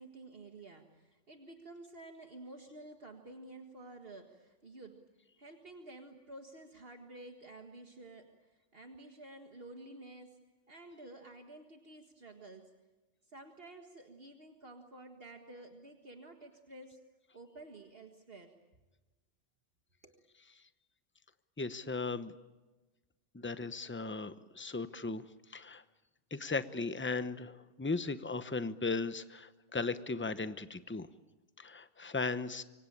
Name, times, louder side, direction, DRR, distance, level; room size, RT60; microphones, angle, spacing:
voice 1, 0.0-5.0 5.4-10.4 10.7-12.7 13.2-17.0 17.3-18.5 20.0-20.2, right 2 dB, 55° right, 4 dB, 1.9 m, -51 dB
voice 2, 21.6-22.3 23.3-25.2 25.5-25.8 26.3-31.1 31.6-32.6, left 3 dB, 10° left, 12 dB, 0.9 m, -37 dB
26.5 x 24.0 x 8.7 m, 1.2 s
omnidirectional pair, 1.2 m